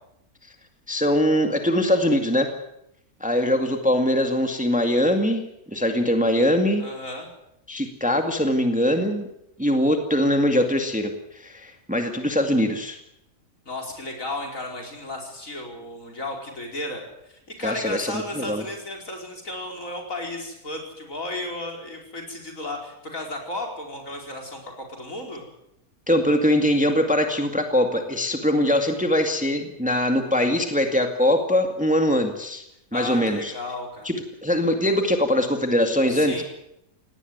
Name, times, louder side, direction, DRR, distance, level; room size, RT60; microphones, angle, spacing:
voice 1, 0.9-2.5 3.2-5.4 5.7-6.8 7.7-9.3 9.6-13.0 17.6-18.6 26.1-32.6 32.9-33.5 34.0-34.1 34.4-36.4, left 1 dB, 5° right, 5 dB, 2.0 m, -22 dB
voice 2, 6.8-7.3 13.7-25.5 32.9-34.1 36.1-36.4, left 2 dB, 60° left, 1 dB, 5.4 m, -34 dB
18.5 x 18.0 x 9.4 m, 0.80 s
omnidirectional pair, 1.6 m